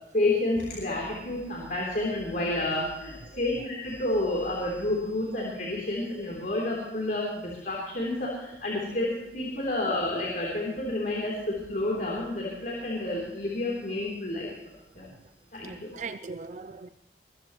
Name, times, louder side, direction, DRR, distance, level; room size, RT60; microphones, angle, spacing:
voice 1, 0.1-14.5 14.9-15.1 15.5-15.9, left 2 dB, 50° left, -3 dB, 3.4 m, -30 dB
voice 2, 15.6-16.9, right 4 dB, 40° right, 11 dB, 0.4 m, -39 dB
22.5 x 14.5 x 3.1 m, 0.98 s
head